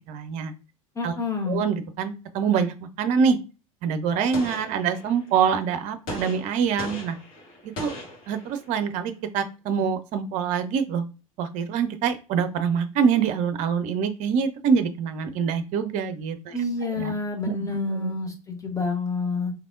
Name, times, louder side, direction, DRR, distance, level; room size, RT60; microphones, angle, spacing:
voice 1, 0.1-0.5 1.0-1.1 1.5-3.4 3.8-7.2 7.8-7.9 8.3-11.0 11.4-16.6 17.0-17.2 17.6-18.2, right 6 dB, 45° right, 10 dB, 0.5 m, -25 dB
voice 2, 1.0-1.6 16.5-19.5, left 3 dB, 15° left, 3 dB, 1.1 m, -28 dB
Gunshot gunfire, 4.3-5.4 6.1-8.8, left 1 dB, 50° left, 1.4 m, -38 dB
3.3 x 2.8 x 2.5 m, 0.32 s
figure-of-eight pair, 75°, 18 cm